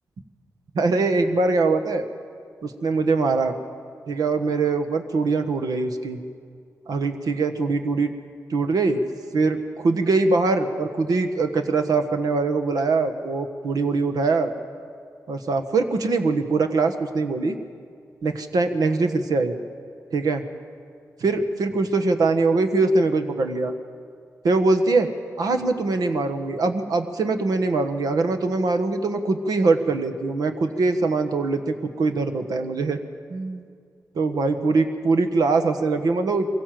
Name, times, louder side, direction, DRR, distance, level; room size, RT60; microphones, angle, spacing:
voice 1, 0.7-2.1 2.6-3.5 4.1-6.2 6.9-8.1 8.5-9.0 9.3-14.5 15.3-17.6 18.2-19.6 20.1-20.4 21.2-23.7 24.4-25.1 25.4-33.0 33.3-33.6 34.1-36.6, right 3 dB, 80° right, 6 dB, 1.4 m, -22 dB
22.5 x 16.5 x 7.7 m, 2.2 s
cardioid pair, 65°, 6 cm